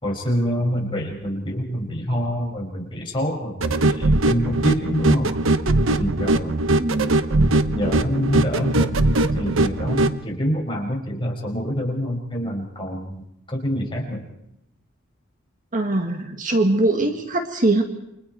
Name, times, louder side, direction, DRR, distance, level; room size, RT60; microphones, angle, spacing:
voice 1, 0.0-5.4 6.0-6.7 7.4-9.0 9.3-14.3, equal, 25° left, -1 dB, 5.9 m, -26 dB
sound 1, 3.6-10.2, right 2 dB, 80° right, 1.1 m, -20 dB
voice 2, 6.8-7.2 15.7-17.8, right 2 dB, 40° right, 5 dB, 1.9 m, -21 dB
29.0 x 24.5 x 4.7 m, 0.81 s
head